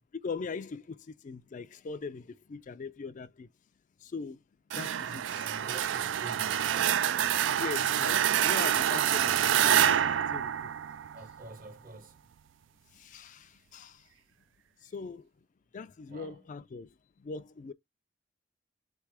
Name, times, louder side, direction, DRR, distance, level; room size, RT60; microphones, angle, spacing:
voice 1, 0.1-3.5 4.0-4.4 4.7-5.5 7.4-10.7 12.9-14.1 14.8-15.3 15.7-17.7, left 4 dB, 45° left, 0.4 m, -41 dB
sound 1, 4.7-11.4, right 10 dB, 80° right, 0.3 m, -27 dB
voice 2, 5.0-6.7 11.1-12.2 16.1-16.4, right 2 dB, 50° right, 0.9 m, -48 dB
3.3 x 3.3 x 4.7 m
head